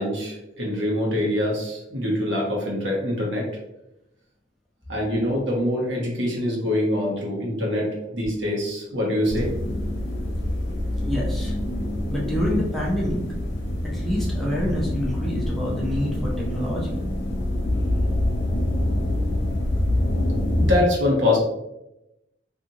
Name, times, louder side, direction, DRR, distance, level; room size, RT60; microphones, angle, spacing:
voice 1, 0.0-3.5 4.9-9.5 20.6-21.4, left 1 dB, 80° right, -3 dB, 1.0 m, -24 dB
sound 1, 9.3-20.7, left 1 dB, 75° left, 0.6 m, -25 dB
voice 2, 11.0-11.6 12.1-13.2 13.9-17.0, equal, ahead, -5 dB, 0.5 m, -27 dB
2.7 x 2.5 x 2.7 m, 0.90 s
head